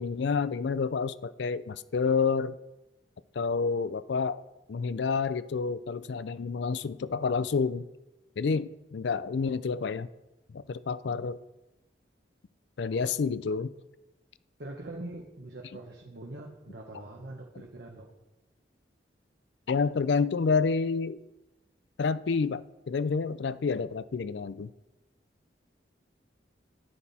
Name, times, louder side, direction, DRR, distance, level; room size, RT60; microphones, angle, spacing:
voice 1, 0.0-2.6 3.4-4.4 4.7-7.8 8.4-10.1 10.5-11.4 12.8-13.7 19.7-21.2 22.0-24.7, left 5 dB, 70° left, 0.4 m, -29 dB
voice 2, 14.6-18.1, right 2 dB, 65° right, 1.3 m, -43 dB
12.5 x 9.2 x 4.2 m
head